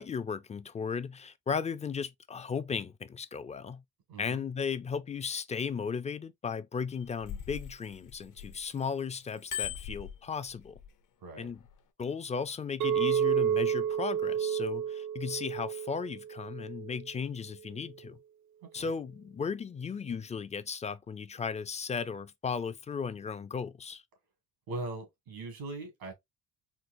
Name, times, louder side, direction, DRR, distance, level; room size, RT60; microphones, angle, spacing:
voice 1, 0.0-3.8 4.2-10.8 11.4-11.6 12.0-18.2 18.7-24.0, left 6 dB, 20° left, 0.3 m, -36 dB
voice 2, 4.1-4.4 11.2-11.5 18.6-18.9 24.7-26.1, right 2 dB, 90° right, 1.9 m, -40 dB
Bicycle bell, 6.9-8.8 9.2-10.9 11.5-11.7, left 9 dB, 60° left, 0.6 m, -40 dB
Chink clink, 12.8-17.1, right 9 dB, 55° right, 0.4 m, -30 dB
4.5 x 2.0 x 2.5 m
cardioid pair, 90°, 36 cm